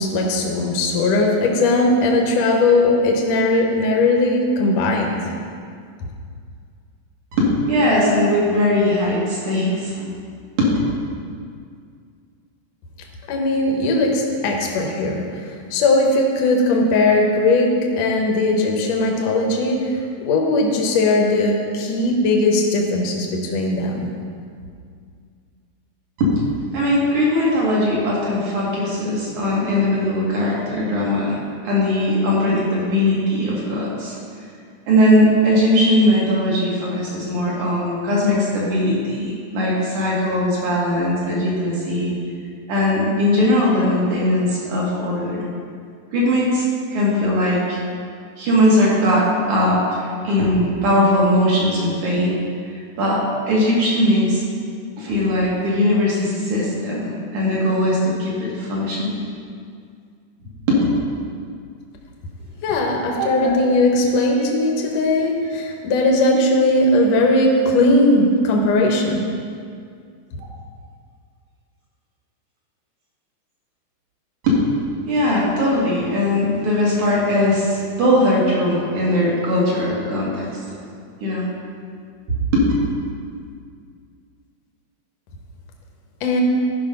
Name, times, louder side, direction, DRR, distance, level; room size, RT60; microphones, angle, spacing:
voice 1, 0.0-5.3 13.3-24.1 62.6-69.2 86.2-86.4, left 2 dB, 70° left, 1 dB, 1.7 m, -19 dB
voice 2, 7.4-10.1 10.6-10.7 26.2-26.3 26.7-31.4 31.6-34.2 34.9-42.1 42.7-45.4 46.1-46.7 46.9-47.8 48.4-52.3 53.0-53.2 53.5-54.4 55.0-59.2 60.7-60.8 63.2-63.6 74.4-74.6 75.1-80.5 81.2-81.5 82.5-82.7, left 1 dB, 55° right, -5 dB, 3.1 m, -19 dB
12.0 x 5.5 x 5.3 m, 2.2 s
omnidirectional pair, 4.5 m